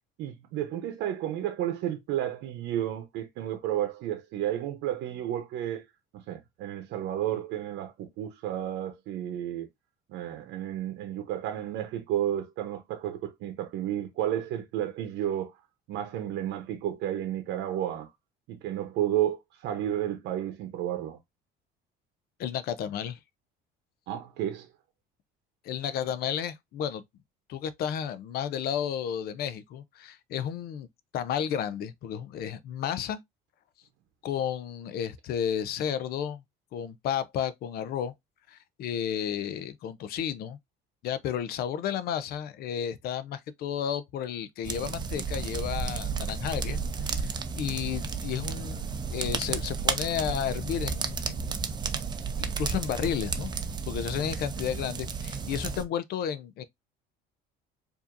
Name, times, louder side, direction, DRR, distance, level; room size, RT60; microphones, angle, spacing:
voice 1, 0.2-5.8 6.1-9.7 10.1-15.5 15.9-18.1 18.5-21.2 24.1-24.7, right 11 dB, 75° right, 0.8 m, -32 dB
voice 2, 22.4-23.2 25.6-27.0 27.5-30.9 31.1-33.2 34.2-36.4 36.7-38.1 38.5-40.6 41.0-51.7 52.4-53.5 53.9-56.6, left 9 dB, 60° left, 0.5 m, -32 dB
sound 1, 44.6-55.8, right 5 dB, 25° right, 0.5 m, -32 dB
4.7 x 2.7 x 2.5 m
cardioid pair, 135°, 18 cm